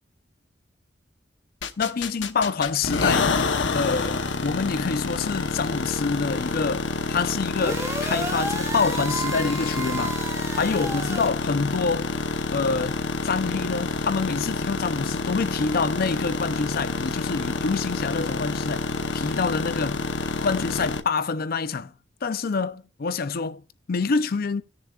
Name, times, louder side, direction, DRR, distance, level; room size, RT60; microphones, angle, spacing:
sound 1, 1.6-21.0, left 3 dB, 90° left, 0.8 m, -28 dB
voice 1, 1.8-3.3 3.7-10.2 10.5-12.1 12.5-18.9 19.1-20.0 20.4-21.9 22.2-23.6 23.9-24.6, left 4 dB, 55° left, 0.5 m, -26 dB
sound 2, 7.5-11.3, right 2 dB, 15° right, 1.5 m, -32 dB
18.0 x 6.8 x 2.3 m
head